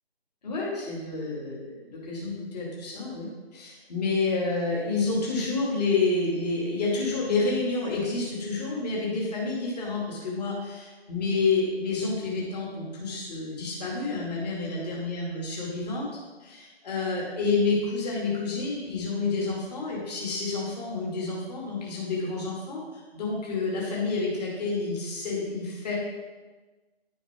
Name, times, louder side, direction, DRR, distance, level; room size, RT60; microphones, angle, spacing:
voice 1, 0.4-16.1 16.4-22.8 23.1-25.9, left 3 dB, 40° left, -4 dB, 2.5 m, -29 dB
11.0 x 7.1 x 3.7 m, 1.2 s
figure-of-eight pair, 145°, 32 cm